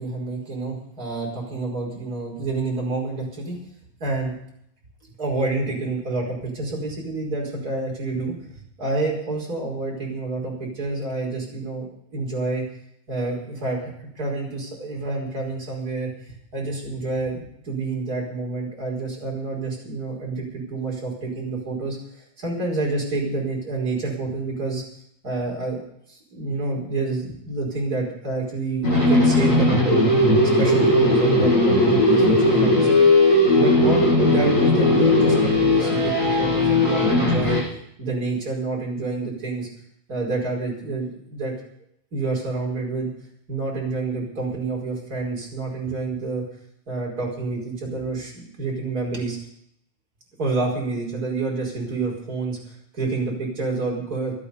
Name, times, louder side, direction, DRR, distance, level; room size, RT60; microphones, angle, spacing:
voice 1, 0.0-3.6 4.0-4.4 5.2-12.6 13.1-24.8 25.2-25.8 26.1-30.0 30.6-33.1 33.5-37.6 38.0-39.7 40.1-41.5 42.1-43.1 43.5-46.4 46.9-49.4 50.4-54.3, right 3 dB, 25° right, -2 dB, 5.3 m, -28 dB
sound 1, 28.8-37.6, left 1 dB, 20° left, 7.5 m, -18 dB
18.0 x 12.0 x 5.4 m, 0.73 s
omnidirectional pair, 3.7 m